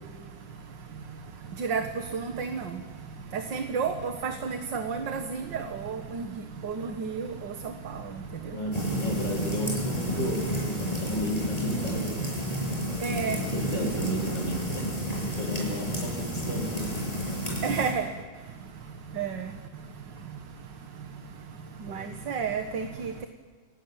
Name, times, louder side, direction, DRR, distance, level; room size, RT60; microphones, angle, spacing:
voice 1, 0.1-9.2 10.1-10.2 10.8-11.1 11.8-13.6 14.3-23.3, right 5 dB, 60° right, 6 dB, 2.1 m, -35 dB
voice 2, 8.4-12.2 13.4-14.9 15.2-16.9 21.9-22.0, equal, 60° left, 2 dB, 7.9 m, -33 dB
sound 1, 8.7-17.9, equal, 15° left, 8.0 m, -31 dB
29.5 x 18.5 x 9.2 m, 1.5 s
omnidirectional pair, 2.2 m